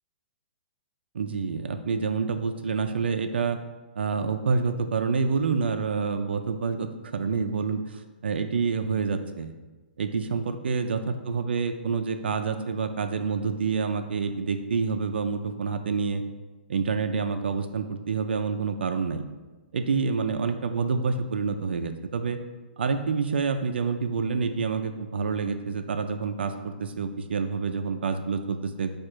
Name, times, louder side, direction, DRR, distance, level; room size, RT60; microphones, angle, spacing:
voice 1, 1.1-3.6 4.0-9.5 10.0-16.2 16.7-19.2 19.7-22.4 22.8-28.9, right 5 dB, 80° right, 7 dB, 0.3 m, -28 dB
4.8 x 2.4 x 4.5 m, 1.2 s
hypercardioid pair, 135°, 6 cm